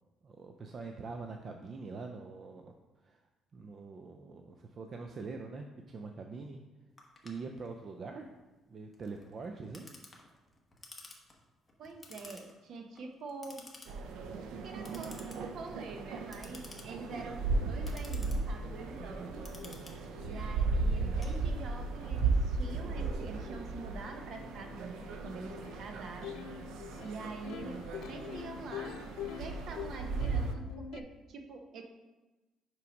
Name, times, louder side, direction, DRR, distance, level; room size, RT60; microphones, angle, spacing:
voice 1, 0.2-2.7 3.0-3.2 3.5-6.6 7.2-8.3 8.7-10.0, right 4 dB, 35° right, 4 dB, 0.4 m, -44 dB
Clock, 7.0-21.9, left 2 dB, 15° left, 1.0 m, -55 dB
voice 2, 11.8-13.6 14.6-19.4 20.2-26.3 27.0-27.8 28.1-29.1 29.4-31.8, right 3 dB, 55° right, 5 dB, 0.8 m, -45 dB
sound 1, 13.9-30.5, right 3 dB, 85° right, 0.6 m, -36 dB
Plucked string instrument, 17.1-17.2 17.5-31.0, left 9 dB, 75° left, 0.3 m, -48 dB
5.8 x 4.6 x 5.2 m, 1.2 s
cardioid pair, 145°, 0 cm